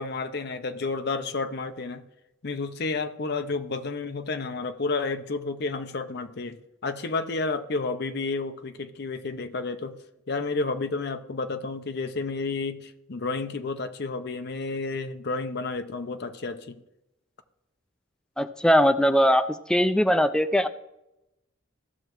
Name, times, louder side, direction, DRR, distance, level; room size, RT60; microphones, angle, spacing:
voice 1, 0.0-2.0 2.4-10.0 10.3-16.8, left 3 dB, 50° left, 0.6 m, -31 dB
voice 2, 18.4-19.4 19.7-20.7, equal, 5° left, 0.3 m, -20 dB
15.0 x 6.6 x 3.0 m
head